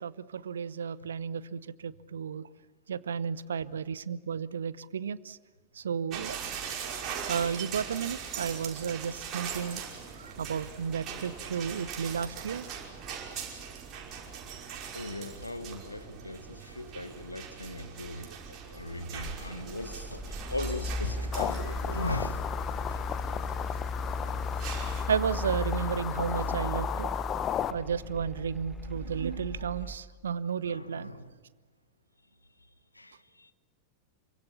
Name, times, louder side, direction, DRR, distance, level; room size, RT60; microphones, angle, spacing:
voice 1, 0.0-2.5 2.9-5.4 5.7-6.6 7.1-9.8 10.1-12.7 21.6-22.0 25.1-27.1 27.7-31.1, right 7 dB, 65° right, 0.8 m, -33 dB
sound 1, 6.1-25.0, right 7 dB, 35° right, 5.6 m, -41 dB
voice 2, 14.9-22.4 22.9-23.0 26.6-26.8 30.6-31.4 32.9-33.5, left 2 dB, 85° left, 1.5 m, -39 dB
Mechanical fan, 18.7-30.0, left 2 dB, ahead, 1.8 m, -36 dB
sound 2, 21.3-27.7, left 10 dB, 30° left, 1.1 m, -35 dB
28.0 x 24.5 x 7.2 m
figure-of-eight pair, 90°, 0 cm